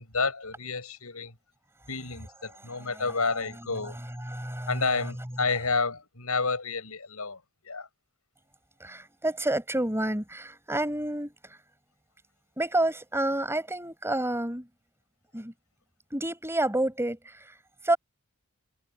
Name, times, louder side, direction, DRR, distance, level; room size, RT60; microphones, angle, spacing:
voice 1, 0.0-1.3 1.9-4.0 4.7-7.9, left 4 dB, 80° left, 7.0 m, -30 dB
voice 2, 2.8-3.7 4.2-5.1 8.8-11.6 12.6-14.7 15.3-15.5 16.1-17.6 17.8-18.0, right 1 dB, 10° right, 5.0 m, -30 dB
head